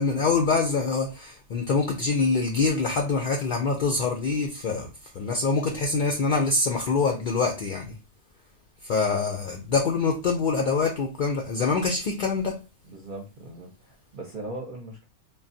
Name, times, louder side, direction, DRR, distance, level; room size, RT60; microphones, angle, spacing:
voice 1, 0.0-8.0 8.8-12.6, left 4 dB, 65° left, 0.5 m, -25 dB
voice 2, 12.8-15.1, right 2 dB, 50° right, 0.7 m, -39 dB
3.3 x 2.3 x 2.6 m
omnidirectional pair, 1.3 m